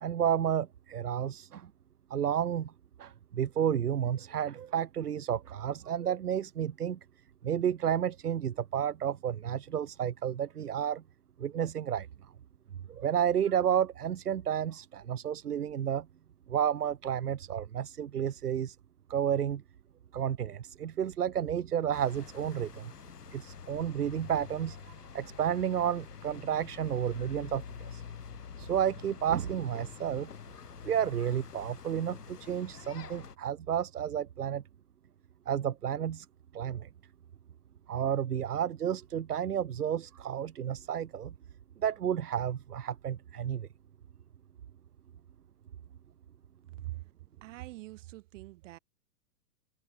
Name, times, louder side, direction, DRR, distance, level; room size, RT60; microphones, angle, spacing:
voice 1, 0.0-1.7 2.1-2.7 3.0-7.0 7.4-11.0 11.4-12.1 12.9-16.1 16.5-18.8 19.1-19.6 20.1-22.9 23.3-28.0 28.6-30.3 30.8-34.6 35.5-36.3 36.5-36.9 37.9-41.3 41.8-43.7, right 9 dB, 75° right, 1.5 m, -31 dB
sound 1, 21.9-33.3, left 7 dB, 85° left, 2.0 m, -47 dB
voice 2, 47.4-48.8, right 17 dB, 55° right, 6.0 m, -43 dB
hypercardioid pair, 110°, 46 cm